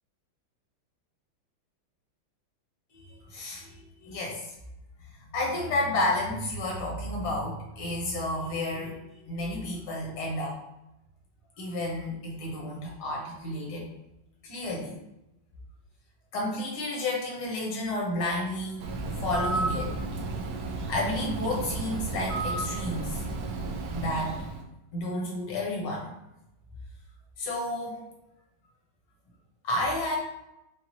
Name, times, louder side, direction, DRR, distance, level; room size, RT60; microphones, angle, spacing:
voice 1, 2.9-4.5 5.3-10.6 11.6-13.9 14.4-15.0 16.3-18.9 19.2-20.0 20.9-23.2 23.9-24.4 24.9-26.1 27.4-28.1 29.6-30.2, left 1 dB, 80° left, -2 dB, 1.9 m, -31 dB
Bird, 18.8-24.6, right 3 dB, 75° right, 0.9 m, -32 dB
5.8 x 2.3 x 2.8 m, 0.89 s
omnidirectional pair, 2.3 m